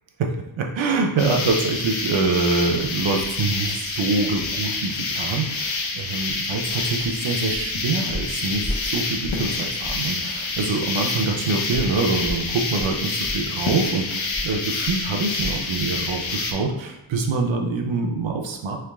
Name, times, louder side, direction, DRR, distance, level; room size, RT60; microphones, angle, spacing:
voice 1, 0.2-18.8, right 3 dB, 80° right, 2 dB, 0.7 m, -25 dB
sound 1, 1.2-16.5, left 3 dB, 80° left, 0.7 m, -27 dB
sound 2, 6.9-7.1 7.5-7.7 8.1-9.5 9.8-10.1 10.5-10.6 11.7-15.7 16.0-16.2 16.6-16.7, left 1 dB, 10° left, 0.9 m, -34 dB
3.5 x 3.0 x 3.5 m, 0.94 s
wide cardioid pair, 80°, 45 cm